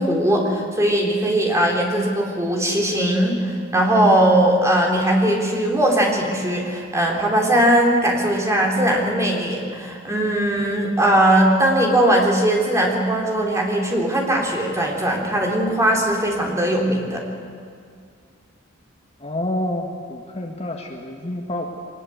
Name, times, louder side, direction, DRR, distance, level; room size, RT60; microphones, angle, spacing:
voice 1, 0.0-17.2, right 1 dB, 15° right, -1 dB, 3.8 m, -19 dB
voice 2, 19.2-21.6, left 1 dB, 30° left, 2 dB, 1.7 m, -28 dB
23.5 x 20.5 x 8.1 m, 2.3 s
head